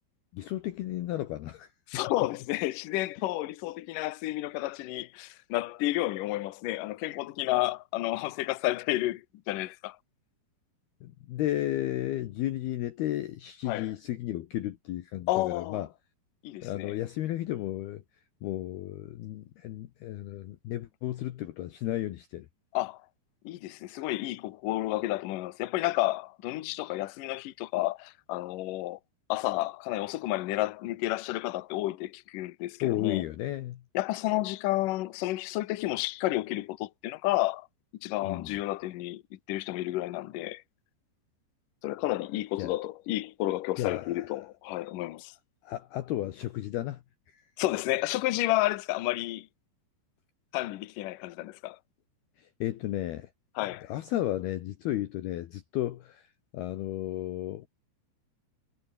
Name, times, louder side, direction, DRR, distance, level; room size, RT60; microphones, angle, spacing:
voice 1, 0.3-1.7 11.0-15.9 16.6-18.0 18.4-22.5 32.8-33.8 38.2-38.5 42.6-42.7 43.8-44.3 45.6-47.4 52.4-53.3 53.9-56.3 56.5-57.7, left 14 dB, 70° left, 2.8 m, -33 dB
voice 2, 1.9-10.0 13.7-13.9 15.3-15.8 16.4-17.0 22.7-23.0 23.4-29.0 29.3-33.2 33.9-37.7 38.0-39.2 39.5-40.6 41.8-45.3 47.6-49.5 50.5-51.8 53.6-53.9, left 17 dB, 85° left, 1.9 m, -31 dB
omnidirectional pair, 5.4 m